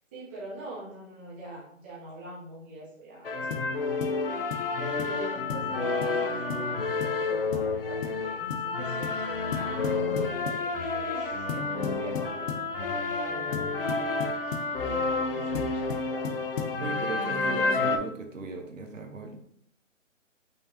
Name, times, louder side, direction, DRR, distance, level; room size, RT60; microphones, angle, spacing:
voice 1, 0.1-14.0 14.4-16.5, right 2 dB, 10° right, -8 dB, 0.6 m, -43 dB
sound 1, 3.2-18.0, left 3 dB, 45° left, 0.5 m, -30 dB
sound 2, 3.5-3.7 4.0-4.2 4.5-4.7 5.0-5.2 5.5-5.7 6.0-6.2 6.5-6.7 7.0-7.2 7.5-7.7 8.0-8.2 8.5-8.7 9.0-9.2 9.5-10.7 11.5-12.7 13.5-14.7 15.5-16.8, left 7 dB, 80° left, 0.8 m, -35 dB
voice 2, 16.8-19.4, right 4 dB, 80° right, 5 dB, 1.0 m, -37 dB
5.4 x 3.2 x 2.7 m, 0.68 s
hypercardioid pair, 150°, 39 cm